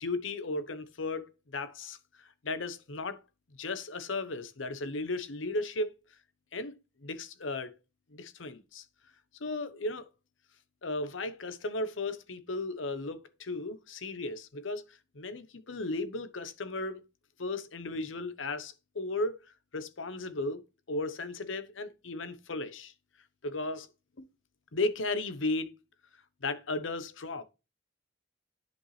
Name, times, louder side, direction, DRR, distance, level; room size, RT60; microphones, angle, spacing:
voice 1, 0.0-3.2 3.6-5.9 6.5-6.7 7.0-7.7 8.1-8.8 9.4-10.1 10.8-17.0 17.4-19.4 19.7-20.6 20.9-22.9 23.4-23.9 24.2-24.3 24.7-25.7 26.4-27.4, left 2 dB, 80° left, 0.9 m, -35 dB
10.5 x 5.3 x 3.3 m
head